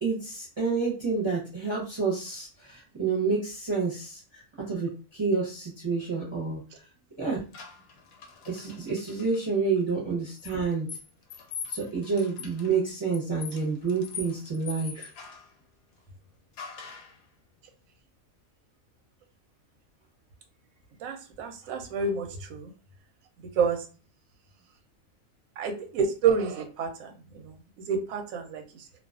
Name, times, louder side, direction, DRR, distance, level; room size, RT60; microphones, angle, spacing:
voice 1, 0.0-6.6 7.2-7.4 8.5-10.9 11.7-15.1, right 4 dB, 30° right, -4 dB, 0.6 m, -29 dB
sound 1, 7.5-9.4 10.4-15.5 16.6-17.2, left 6 dB, 65° left, 0.6 m, -42 dB
voice 2, 21.0-22.7 23.6-23.8 25.6-27.6 27.9-28.8, right 5 dB, 90° right, 5 dB, 1.0 m, -29 dB
2.3 x 2.3 x 2.3 m, 0.35 s
omnidirectional pair, 1.4 m